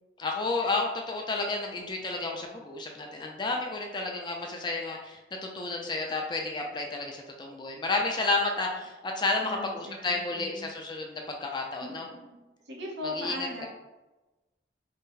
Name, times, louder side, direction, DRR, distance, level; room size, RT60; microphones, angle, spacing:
voice 1, 0.2-12.1 13.0-13.7, left 3 dB, 25° left, 1 dB, 0.4 m, -31 dB
voice 2, 9.4-10.7 11.8-13.7, left 1 dB, 75° right, -3 dB, 0.8 m, -39 dB
2.6 x 2.1 x 3.7 m, 1.1 s
head